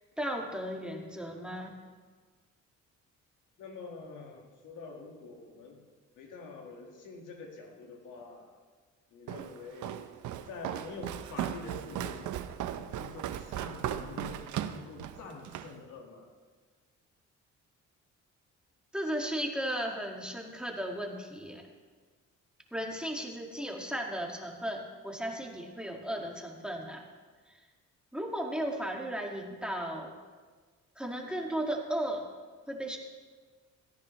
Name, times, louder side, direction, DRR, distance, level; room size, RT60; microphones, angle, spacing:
voice 1, 0.2-1.7 18.9-21.6 22.7-27.1 27.5-27.6 28.1-30.1 31.0-32.2 32.7-33.0, right 1 dB, 5° right, 0 dB, 2.0 m, -35 dB
voice 2, 3.6-5.8 6.2-8.6 9.1-10.0 10.5-12.3 12.7-16.3, left 4 dB, 85° left, 2 dB, 1.9 m, -46 dB
Walk footsteps, 9.3-15.7, right 11 dB, 80° right, 0.7 m, -37 dB
17.0 x 14.0 x 3.2 m, 1.4 s
cardioid pair, 90°, 30 cm